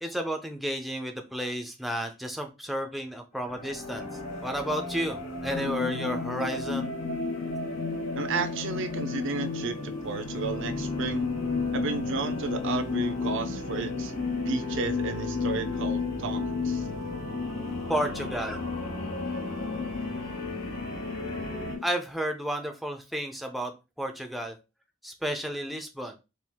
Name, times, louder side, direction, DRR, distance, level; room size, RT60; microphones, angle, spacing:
voice 1, 0.0-6.9 17.9-18.6 21.8-24.6 25.0-26.1, equal, ahead, 0.4 m, -32 dB
sound 1, 3.3-21.8, equal, 90° left, 2.4 m, -37 dB
sound 2, 5.5-21.8, left 6 dB, 60° left, 0.4 m, -33 dB
voice 2, 8.2-11.3 11.7-14.1 14.4-16.9, right 4 dB, 60° right, 0.5 m, -33 dB
4.3 x 2.4 x 3.5 m
head